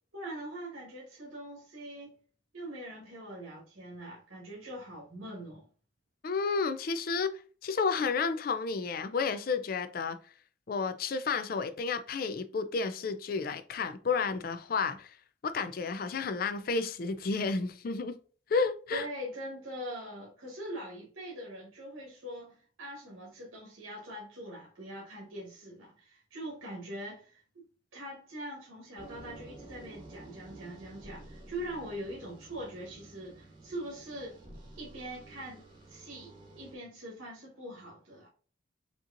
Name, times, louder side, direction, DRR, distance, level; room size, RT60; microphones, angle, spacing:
voice 1, 0.1-2.2 2.5-5.6 18.9-27.6 27.9-34.4 34.8-38.3, right 1 dB, 90° right, 1.3 m, -43 dB
voice 2, 6.2-10.2 10.7-15.2 15.4-18.2 18.5-19.1, left 4 dB, 45° left, 0.4 m, -31 dB
sound 1, 29.0-36.8, right 2 dB, 25° right, 1.0 m, -51 dB
5.2 x 2.9 x 2.5 m
head